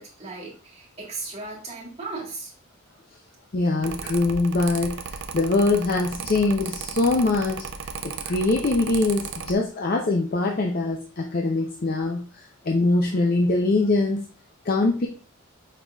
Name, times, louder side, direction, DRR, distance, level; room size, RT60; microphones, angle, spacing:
voice 1, 0.0-2.5, right 3 dB, 30° right, -4 dB, 1.5 m, -36 dB
voice 2, 3.5-7.6 8.0-12.2 12.7-14.2 14.7-15.1, left 2 dB, 40° left, 1 dB, 0.5 m, -23 dB
Mechanical fan, 3.8-9.5, right 6 dB, 55° right, 0.4 m, -35 dB
5.4 x 3.8 x 2.3 m, 0.40 s
head